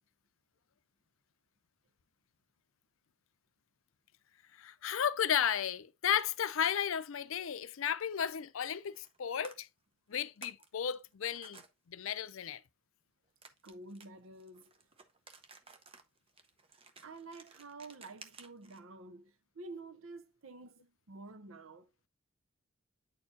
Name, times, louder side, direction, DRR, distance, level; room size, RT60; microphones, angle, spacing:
voice 1, 4.6-9.7 10.1-12.6, left 8 dB, 75° left, 0.5 m, -34 dB
sound 1, 8.8-9.2 9.4-9.6 10.1-10.7 10.9-11.7 13.4-18.8, right 4 dB, 25° right, 0.7 m, -55 dB
voice 2, 13.6-14.7 17.0-21.9, right 3 dB, 75° right, 0.7 m, -50 dB
9.2 x 4.5 x 2.6 m
head